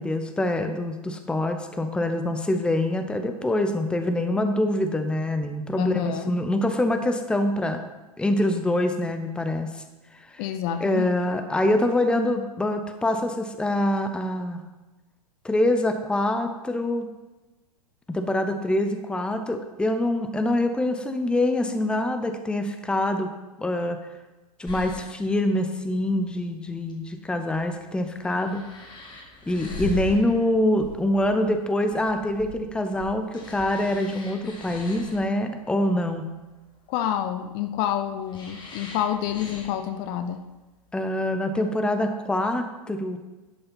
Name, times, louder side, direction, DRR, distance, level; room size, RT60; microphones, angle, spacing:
voice 1, 0.0-7.8 8.2-9.8 10.3-10.4 10.8-14.6 15.4-17.1 18.1-23.3 23.6-24.0 24.6-28.6 29.5-36.2 40.9-43.2, left 1 dB, 5° left, 7 dB, 0.7 m, -25 dB
voice 2, 5.8-6.3 10.4-11.2 36.9-40.4, left 10 dB, 40° left, 8 dB, 0.7 m, -28 dB
sound 1, 24.7-40.9, left 2 dB, 25° left, 1.9 m, -41 dB
11.0 x 5.6 x 5.4 m, 1.1 s
figure-of-eight pair, 95°, 20 cm